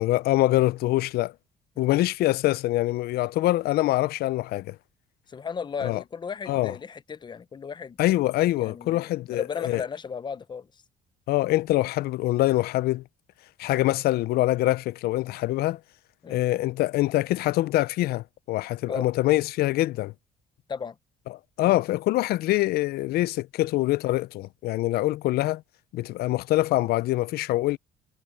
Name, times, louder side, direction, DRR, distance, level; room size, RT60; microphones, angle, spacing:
voice 1, 0.0-1.3 1.8-4.8 5.8-6.0 6.5-6.7 8.0-9.8 11.3-13.0 13.6-15.8 16.3-20.1 21.6-25.6 25.9-27.8, left 16 dB, 70° left, 0.4 m, -24 dB
voice 2, 5.3-8.0 8.6-10.8 16.2-16.5 18.9-19.1 20.7-21.0 21.6-21.7, left 6 dB, 25° left, 0.7 m, -35 dB
cardioid pair, 110°, 17 cm